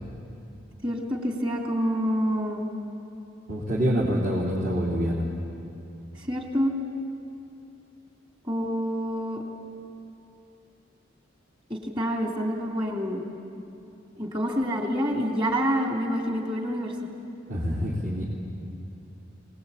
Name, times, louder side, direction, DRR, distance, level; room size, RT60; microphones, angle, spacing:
voice 1, 0.8-2.6 6.2-6.7 8.5-9.4 11.7-13.2 14.2-16.9, equal, 25° right, 1 dB, 3.0 m, -27 dB
voice 2, 3.5-5.3 17.5-18.2, equal, 50° right, -6 dB, 3.4 m, -26 dB
25.5 x 19.5 x 8.6 m, 2.7 s
head